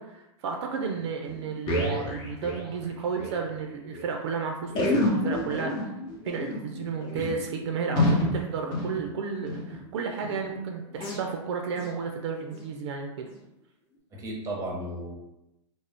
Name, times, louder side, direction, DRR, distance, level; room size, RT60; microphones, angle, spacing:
voice 1, 0.0-5.8 6.2-13.3, right 5 dB, 65° right, 3 dB, 0.4 m, -32 dB
sound 1, 0.9-1.0 1.2-3.4 3.7-3.8 3.9-4.1 4.7-9.8 10.2-10.5 10.9-11.2 11.7-12.0 12.5-12.6 13.3-13.4, left 1 dB, 35° left, 0.8 m, -29 dB
voice 2, 14.1-15.1, right 1 dB, 20° right, -1 dB, 0.8 m, -34 dB
2.4 x 2.0 x 3.4 m, 0.92 s
hypercardioid pair, 130°, 15 cm